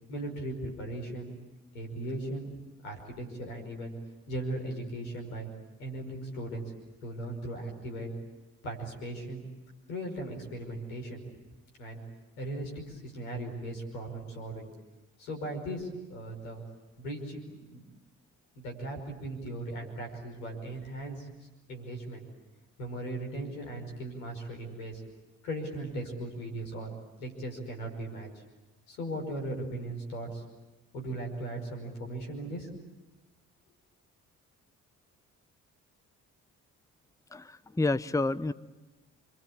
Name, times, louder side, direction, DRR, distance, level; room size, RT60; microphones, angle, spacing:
voice 1, 0.1-1.3 1.7-2.5 2.8-3.9 4.3-5.5 5.8-6.6 7.0-8.1 8.6-9.4 9.9-11.2 11.8-12.0 12.4-14.7 15.2-16.6 17.0-17.8 18.6-21.3 21.7-22.3 22.8-25.0 25.4-26.9 27.2-28.3 28.9-30.4 30.9-32.7, right 1 dB, 80° left, 3 dB, 5.5 m, -38 dB
voice 2, 37.3-38.5, left 2 dB, 10° left, 15 dB, 0.9 m, -29 dB
28.5 x 23.0 x 8.7 m, 1.1 s
hypercardioid pair, 40°, 41 cm